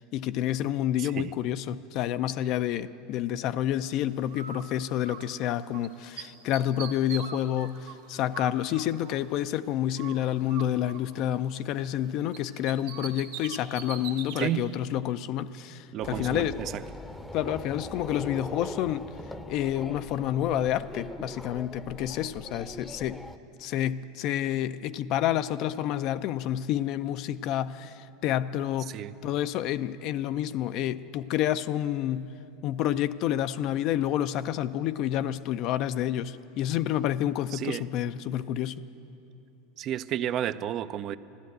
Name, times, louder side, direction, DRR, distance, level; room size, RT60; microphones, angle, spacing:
voice 1, 0.0-16.6 17.3-19.1 19.5-23.2 23.6-28.9 29.2-32.3 32.6-38.8, left 11 dB, 55° left, 0.4 m, -29 dB
voice 2, 1.0-1.3 14.4-14.7 15.9-16.7 28.9-29.1 37.5-37.8 39.8-41.2, right 11 dB, 45° right, 0.5 m, -31 dB
Bird, 4.3-5.9 6.2-9.6 9.9-12.0 12.3-14.5, right 8 dB, 75° right, 1.3 m, -43 dB
sound 1, 16.0-23.4, left 1 dB, 5° left, 0.7 m, -41 dB
13.0 x 12.0 x 9.2 m
hypercardioid pair, 95°, 0 cm